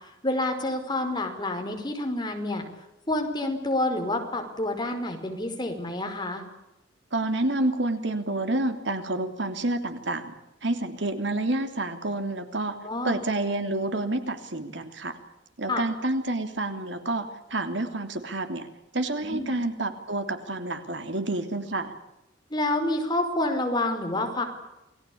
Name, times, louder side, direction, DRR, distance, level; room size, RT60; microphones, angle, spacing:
voice 1, 0.2-2.6 3.1-6.4 12.8-13.2 15.7-15.8 19.2-19.6 22.5-24.4, left 2 dB, 25° left, 4 dB, 5.2 m, -28 dB
voice 2, 7.1-10.3 10.6-12.8 13.0-15.2 15.6-18.7 18.9-21.9, right 2 dB, 65° right, 7 dB, 3.1 m, -29 dB
29.0 x 20.0 x 8.7 m, 0.96 s
head